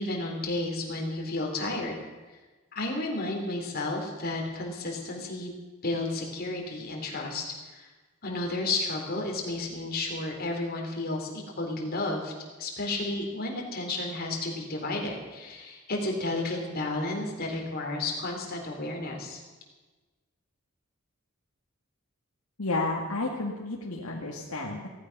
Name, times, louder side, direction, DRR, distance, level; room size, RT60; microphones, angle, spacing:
voice 1, 0.0-2.0 2.7-5.5 5.8-7.9 8.2-12.3 12.6-19.4, left 2 dB, 45° left, 0 dB, 3.7 m, -32 dB
voice 2, 22.6-24.9, left 2 dB, 90° left, -2 dB, 2.0 m, -31 dB
16.5 x 14.5 x 6.1 m, 1.3 s
head